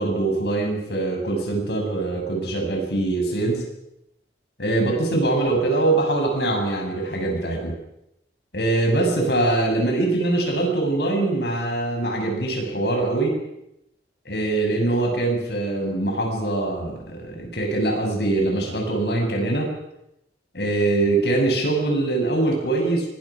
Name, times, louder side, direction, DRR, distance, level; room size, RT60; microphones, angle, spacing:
voice 1, 0.0-3.6 4.6-7.7 8.5-13.3 14.3-19.7 20.5-23.1, right 2 dB, 70° left, 2 dB, 6.8 m, -23 dB
24.0 x 20.5 x 6.1 m, 0.83 s
head